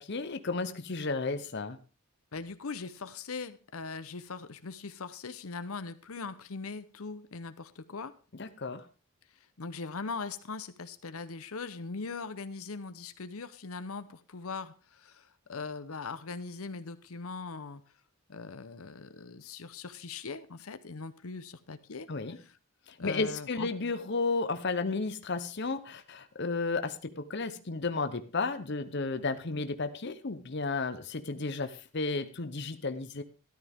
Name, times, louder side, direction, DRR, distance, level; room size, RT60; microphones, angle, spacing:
voice 1, 0.0-1.8 8.4-8.8 22.1-22.4 23.0-33.2, left 3 dB, 50° left, 9 dB, 0.8 m, -33 dB
voice 2, 2.3-8.1 9.6-17.8 18.3-22.6 23.0-23.7, left 4 dB, 85° left, 12 dB, 0.8 m, -40 dB
13.0 x 12.0 x 3.6 m, 0.37 s
head